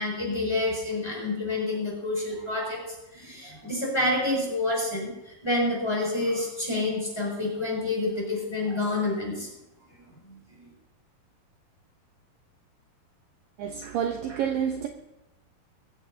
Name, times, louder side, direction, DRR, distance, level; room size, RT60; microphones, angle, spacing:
voice 1, 0.0-9.5 10.2-10.4, left 2 dB, 5° left, -3 dB, 6.5 m, -28 dB
voice 2, 13.6-14.9, right 8 dB, 70° right, 3 dB, 2.4 m, -29 dB
22.0 x 16.5 x 2.9 m, 0.90 s
omnidirectional pair, 4.6 m